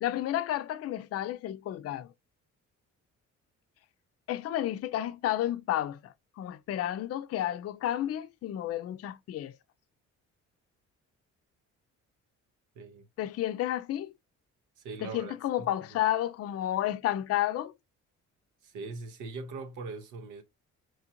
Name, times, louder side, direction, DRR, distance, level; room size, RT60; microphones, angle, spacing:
voice 1, 0.0-2.1 4.3-9.6 13.2-14.1 15.0-17.7, left 12 dB, 55° left, 0.4 m, -31 dB
voice 2, 12.7-13.1 14.8-15.7 18.6-20.4, right 4 dB, 90° right, 0.9 m, -41 dB
4.5 x 2.4 x 2.9 m
cardioid pair, 90°, 30 cm